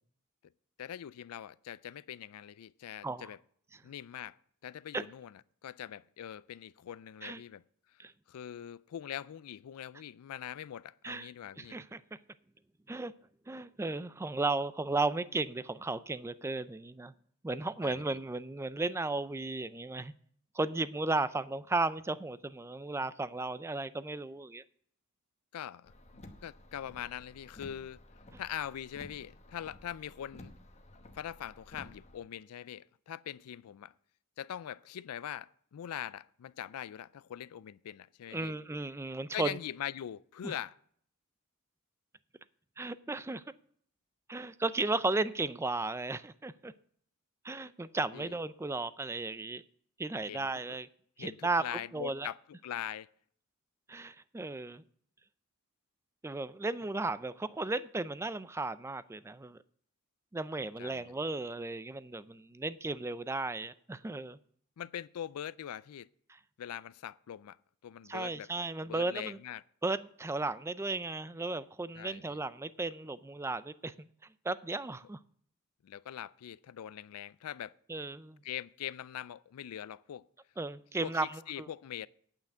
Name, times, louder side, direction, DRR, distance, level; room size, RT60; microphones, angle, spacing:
voice 1, 0.8-3.4 3.8-4.4 4.6-7.6 7.9-8.0 8.3-11.8 17.8-18.0 25.5-25.9 26.4-28.0 28.4-30.5 31.1-33.9 34.4-38.5 39.3-40.8 48.1-48.4 50.3-50.5 51.2-52.4 52.6-53.1 60.8-61.1 64.8-66.1 66.6-67.6 67.8-68.5 68.9-69.6 72.0-72.4 75.8-77.7 78.4-80.3 81.0-82.1, left 10 dB, 85° left, 0.4 m, -42 dB
voice 2, 11.6-12.0 12.9-13.1 13.5-17.1 17.4-20.1 20.5-24.6 38.3-39.6 40.4-40.5 42.8-43.4 44.3-46.7 47.4-49.6 50.0-50.9 51.2-51.6 51.9-52.3 53.9-54.8 56.2-59.6 60.3-64.4 68.1-69.4 69.8-74.1 74.4-75.2 77.9-78.4 80.6-81.7, right 3 dB, 10° right, 0.3 m, -35 dB
Car, 25.9-32.2, left 1 dB, 30° left, 1.0 m, -54 dB
9.0 x 5.9 x 7.9 m
head